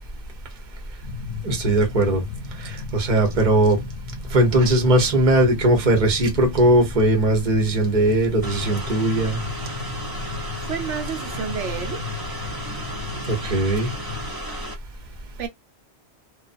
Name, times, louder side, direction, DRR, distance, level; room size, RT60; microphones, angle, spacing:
sound 1, 1.0-14.3, left 4 dB, 80° left, 0.9 m, -35 dB
voice 1, 1.4-2.2 2.6-3.8 4.3-9.4 13.3-13.9, right 1 dB, 45° right, 0.9 m, -19 dB
sound 2, 8.4-14.7, right 1 dB, 30° right, 0.4 m, -35 dB
voice 2, 10.6-12.0 15.4-15.5, right 7 dB, 85° right, 1.1 m, -30 dB
2.4 x 2.3 x 2.4 m
omnidirectional pair, 1.2 m